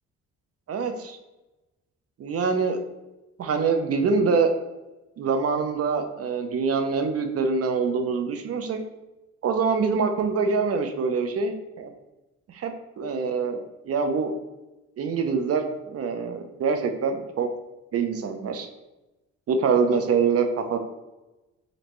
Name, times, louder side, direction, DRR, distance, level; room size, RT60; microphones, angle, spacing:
voice 1, 0.7-1.2 2.2-2.8 3.4-4.5 5.2-8.8 9.4-11.9 12.5-14.3 15.0-17.5 17.9-18.7 19.5-20.8, right 5 dB, 50° right, 6 dB, 0.7 m, -25 dB
5.2 x 2.8 x 3.0 m, 1.0 s
cardioid pair, 90°, 30 cm